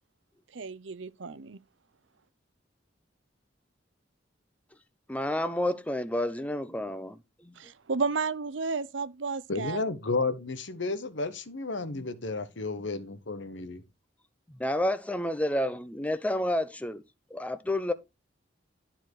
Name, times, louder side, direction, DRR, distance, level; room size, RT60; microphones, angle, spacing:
voice 1, 0.5-1.6 7.6-9.8, right 4 dB, 90° right, 0.7 m, -32 dB
voice 2, 5.1-7.5 11.9-12.0 14.6-17.0 17.3-17.9, left 1 dB, 10° left, 0.6 m, -30 dB
voice 3, 9.5-13.8, left 3 dB, 85° left, 1.2 m, -32 dB
12.0 x 4.4 x 4.6 m
head